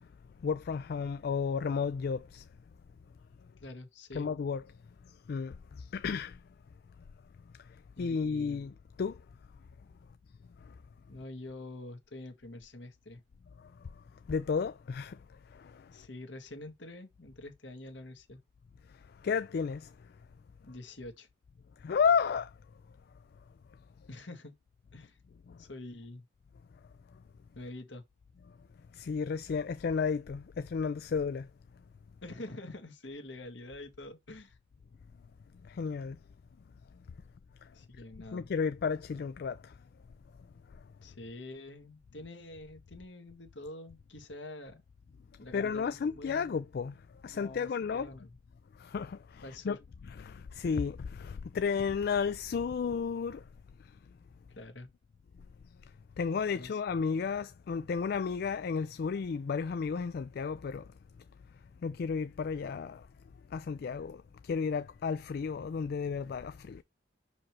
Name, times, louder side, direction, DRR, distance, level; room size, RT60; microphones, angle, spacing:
voice 1, 0.4-2.4 4.1-4.6 5.3-6.4 8.0-8.7 9.0-9.2 13.6-13.7 14.3-15.2 15.5-15.9 19.2-19.9 21.8-22.5 25.5-25.6 28.9-31.5 35.7-36.2 38.3-39.7 45.5-47.0 47.2-48.1 48.8-49.8 50.2-53.4 56.2-60.9 61.8-63.1 63.5-66.8, left 5 dB, 55° left, 0.3 m, -32 dB
voice 2, 3.6-4.3 8.0-8.6 11.1-13.2 15.9-18.4 20.6-21.3 24.1-24.5 24.9-25.2 25.6-26.3 27.5-28.0 32.2-34.6 37.7-38.5 41.0-44.8 45.4-46.5 47.3-48.4 49.4-49.8 54.5-54.9 56.5-56.8, left 2 dB, 70° left, 1.6 m, -46 dB
6.0 x 5.1 x 3.3 m
head